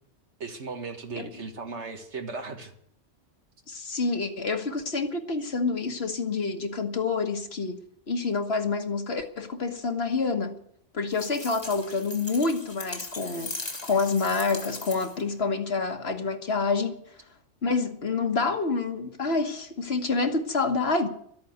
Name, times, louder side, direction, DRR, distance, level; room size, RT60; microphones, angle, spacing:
voice 1, 0.4-2.7, right 4 dB, 70° right, 1.9 m, -36 dB
voice 2, 3.7-7.8 8.1-10.5 10.9-17.0 17.6-21.1, left 4 dB, 55° left, 1.6 m, -27 dB
sound 1, 11.1-15.3, left 2 dB, 20° left, 1.6 m, -39 dB
13.0 x 8.7 x 9.4 m
omnidirectional pair, 1.3 m